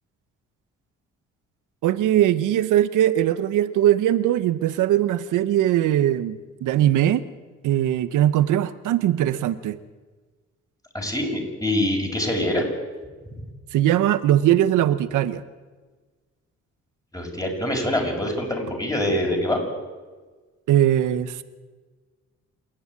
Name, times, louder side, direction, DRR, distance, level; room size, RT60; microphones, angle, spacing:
voice 1, 1.8-7.2 7.6-9.8 13.7-15.4 20.7-21.4, right 12 dB, 85° right, 12 dB, 1.2 m, -20 dB
voice 2, 10.9-12.7 17.1-19.6, left 1 dB, 10° left, 2 dB, 6.5 m, -24 dB
28.0 x 10.5 x 9.8 m, 1.4 s
cardioid pair, 90°, 30 cm